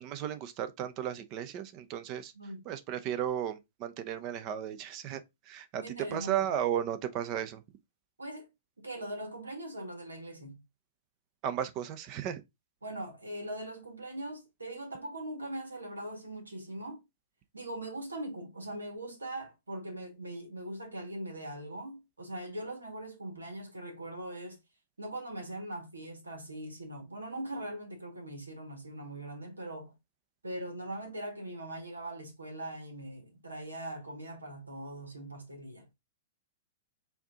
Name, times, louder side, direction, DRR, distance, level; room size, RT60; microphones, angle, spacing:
voice 1, 0.0-2.3 2.7-5.2 5.5-5.8 6.1-7.6 11.4-12.4, right 10 dB, 40° right, 0.7 m, -34 dB
voice 2, 2.3-2.7 5.7-6.5 8.2-8.5 8.8-10.6 12.8-17.0 17.5-24.6 25.0-29.9 30.4-35.9, right 1 dB, 90° right, 1.6 m, -41 dB
4.5 x 2.7 x 3.5 m
hypercardioid pair, 110°, 0 cm